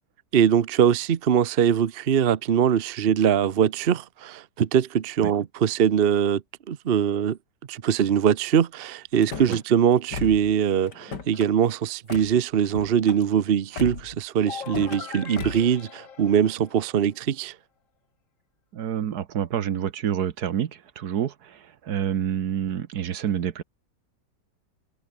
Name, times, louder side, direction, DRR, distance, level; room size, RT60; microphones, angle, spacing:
voice 1, 0.3-6.4 6.7-7.4 7.7-17.6, right 8 dB, 45° right, 0.9 m, -22 dB
Car / Slam, 9.1-9.6 10.1-10.5 10.9-11.5 12.1-12.3 12.7-13.2 13.8-14.2 14.6-15.0 15.4-15.7, left 5 dB, 85° left, 3.4 m, -36 dB
sound 1, 14.4-17.2, left 6 dB, 50° left, 1.8 m, -40 dB
voice 2, 18.7-23.6, right 9 dB, 70° right, 1.6 m, -28 dB
omnidirectional pair, 1.8 m